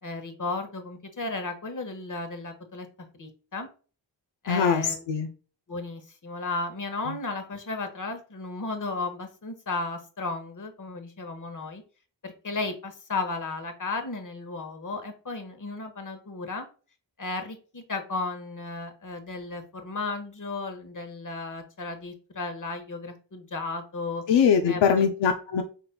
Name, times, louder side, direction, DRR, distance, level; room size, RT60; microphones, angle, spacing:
voice 1, 0.0-2.9 3.2-3.7 4.4-5.0 5.7-11.8 12.2-16.6 17.2-24.2 24.7-25.1, left 3 dB, 40° left, 6 dB, 1.3 m, -34 dB
voice 2, 4.5-4.8 5.1-5.3 24.3-25.6, left 7 dB, 70° left, 5 dB, 0.7 m, -22 dB
5.1 x 4.1 x 2.2 m, 0.37 s
cardioid pair, 45°, 46 cm